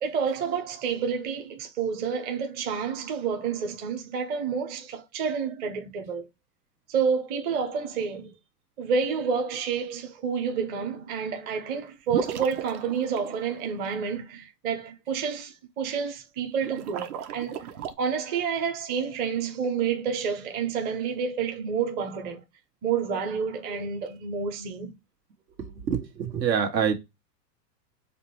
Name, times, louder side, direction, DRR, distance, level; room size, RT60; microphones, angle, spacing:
voice 1, 0.0-6.2 6.9-8.3 8.8-17.7 18.0-22.4 22.8-24.9, right 6 dB, 20° right, 0.5 m, -29 dB
sound 1, 12.1-13.9 16.6-17.9, right 9 dB, 60° right, 0.8 m, -35 dB
voice 2, 25.6-26.9, right 7 dB, 85° right, 1.4 m, -26 dB
4.9 x 2.1 x 3.0 m
hypercardioid pair, 125°, 50 cm